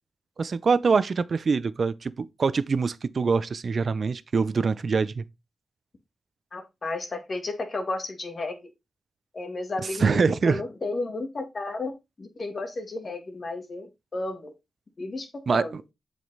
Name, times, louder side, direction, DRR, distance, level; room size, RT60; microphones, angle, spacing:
voice 1, 0.4-5.2 10.0-10.6 15.5-15.6, right 5 dB, 55° right, 0.6 m, -24 dB
voice 2, 6.5-8.7 9.3-11.9 12.2-14.5 15.0-15.7, left 2 dB, 45° left, 2.0 m, -33 dB
7.7 x 5.2 x 4.0 m
cardioid pair, 70°, 0 cm